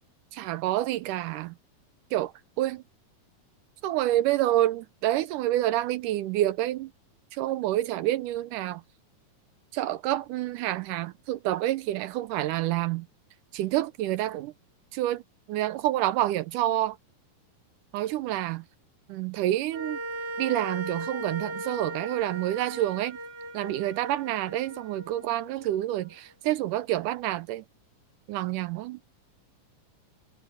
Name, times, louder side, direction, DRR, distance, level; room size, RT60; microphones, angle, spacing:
voice 1, 0.3-1.5 2.1-2.3 2.6-2.8 3.8-6.9 7.3-8.8 9.7-13.1 13.5-14.5 14.9-15.2 15.5-17.0 17.9-18.6 19.1-20.0 20.4-23.2 23.5-27.6 28.3-29.0, right 14 dB, 75° right, 2.1 m, -28 dB
sound 1, 19.7-26.1, right 2 dB, 45° right, 5.8 m, -38 dB
omnidirectional pair, 3.9 m